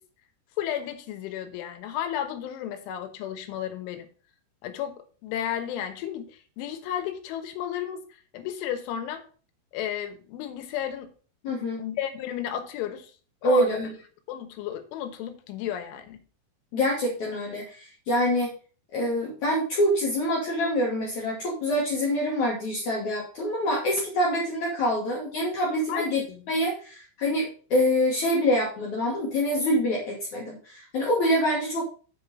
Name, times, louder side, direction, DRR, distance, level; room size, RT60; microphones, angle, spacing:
voice 1, 0.6-4.1 4.6-9.2 9.7-11.1 11.8-13.1 13.4-13.8 14.3-16.2 25.9-26.4, left 10 dB, 85° left, 8 dB, 3.6 m, -33 dB
voice 2, 11.4-11.8 13.4-13.9 16.7-18.5 18.9-26.2 26.5-31.8, equal, 60° left, -3 dB, 2.2 m, -25 dB
7.8 x 5.6 x 5.3 m, 0.40 s
omnidirectional pair, 5.4 m